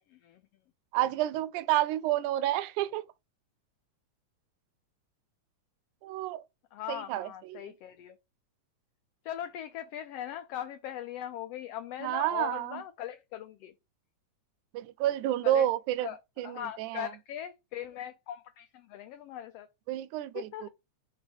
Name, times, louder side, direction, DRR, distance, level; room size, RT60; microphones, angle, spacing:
voice 1, 0.1-0.4 6.7-8.2 9.2-13.7 15.4-15.7 16.0-16.2 16.4-19.7 20.3-20.7, left 11 dB, 85° left, 1.4 m, -40 dB
voice 2, 0.9-3.1 6.0-6.4 6.9-7.7 12.0-12.8 14.7-16.1 16.4-17.1 19.9-20.7, right 13 dB, 85° right, 2.0 m, -30 dB
5.1 x 4.1 x 5.0 m
omnidirectional pair, 3.5 m